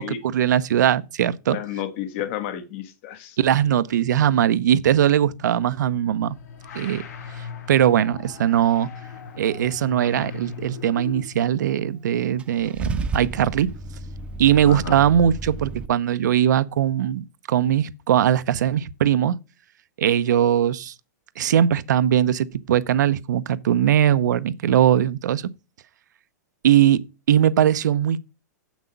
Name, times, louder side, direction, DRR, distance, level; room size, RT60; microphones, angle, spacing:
voice 1, 0.0-1.6 3.4-6.4 6.7-7.0 7.4-8.9 9.3-13.7 14.4-17.2 17.5-19.4 20.0-20.9 21.4-25.4 26.6-28.4, right 10 dB, 75° right, 0.7 m, -20 dB
voice 2, 1.5-3.4 14.6-15.0, left 10 dB, 45° left, 1.3 m, -31 dB
sound 1, 5.9-11.5, left 6 dB, 60° left, 2.5 m, -38 dB
Car / Engine starting / Idling, 12.4-15.9, right 3 dB, 10° right, 0.4 m, -32 dB
8.1 x 6.2 x 5.2 m
hypercardioid pair, 155°, 10 cm